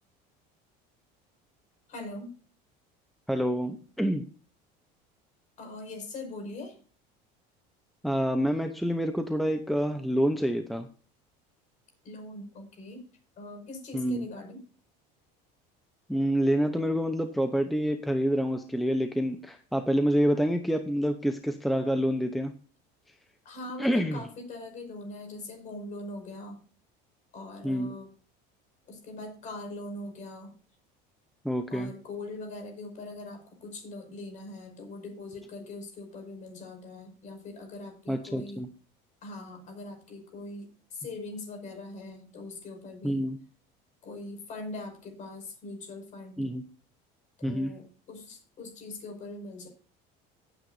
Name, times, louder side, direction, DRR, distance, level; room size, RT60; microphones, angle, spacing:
voice 1, 1.9-2.3 5.6-6.8 12.0-13.0 13.4-14.6 23.4-26.6 27.3-28.1 28.9-30.5 31.7-38.6 39.2-43.3 44.0-46.5 47.4-49.7, left 2 dB, 40° left, 5 dB, 5.6 m, -41 dB
voice 2, 3.3-4.2 8.0-10.9 13.9-14.3 16.1-22.5 23.8-24.2 27.6-27.9 31.4-31.9 38.1-38.7 43.0-43.4 46.4-46.6 47.4-47.8, equal, ahead, 7 dB, 0.7 m, -27 dB
17.0 x 9.2 x 2.6 m, 0.39 s
cardioid pair, 160°, 20 cm